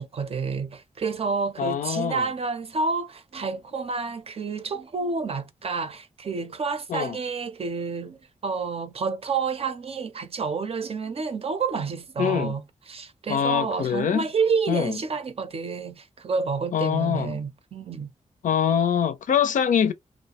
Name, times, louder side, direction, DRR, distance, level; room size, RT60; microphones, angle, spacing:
voice 1, 0.0-18.1, right 4 dB, 50° right, 0.6 m, -29 dB
voice 2, 1.6-2.3 6.9-7.2 12.2-12.5 13.3-14.3 14.7-15.0 16.7-17.4 18.4-19.9, left 8 dB, 80° left, 0.5 m, -24 dB
2.5 x 2.1 x 2.8 m
wide cardioid pair, 100°, 13 cm